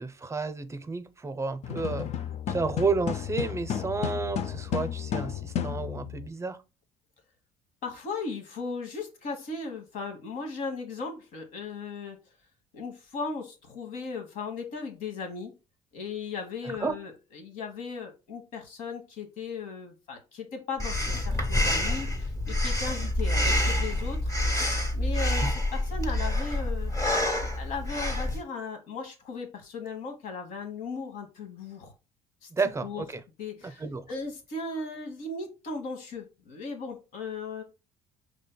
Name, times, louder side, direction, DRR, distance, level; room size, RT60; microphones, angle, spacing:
voice 1, 0.0-2.1 2.5-6.6 16.6-17.0 32.5-33.2 33.6-34.1, right 4 dB, 20° right, 0.6 m, -31 dB
sound 1, 1.6-6.3, left 9 dB, 50° left, 0.4 m, -33 dB
voice 2, 7.8-12.2 12.7-15.5 15.9-24.3 24.9-26.9 27.6-31.9 32.4-32.5 32.8-33.0 33.4-37.6, left 4 dB, 70° left, 1.2 m, -37 dB
Breathing, 20.8-28.4, left 1 dB, 25° left, 1.4 m, -27 dB
5.1 x 3.2 x 2.2 m
supercardioid pair, 70°, 14 cm